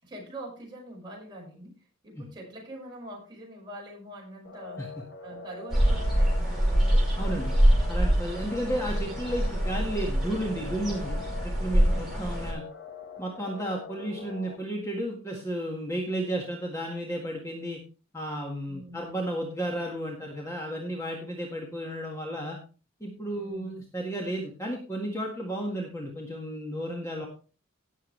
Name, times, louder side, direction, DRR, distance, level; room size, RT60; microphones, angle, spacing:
voice 1, 0.0-4.9 5.2-6.9 11.8-12.5 18.7-19.3 23.3-23.8, right 1 dB, 20° right, -3 dB, 5.8 m, -44 dB
sound 1, 4.4-14.6, left 4 dB, 50° left, 1.7 m, -43 dB
sound 2, 5.7-12.5, equal, ahead, 5.1 m, -25 dB
voice 2, 7.2-7.6 7.9-12.6 13.2-17.8 18.1-22.6 23.0-27.3, right 1 dB, 15° left, -1 dB, 1.8 m, -33 dB
17.5 x 7.4 x 3.3 m, 0.34 s
head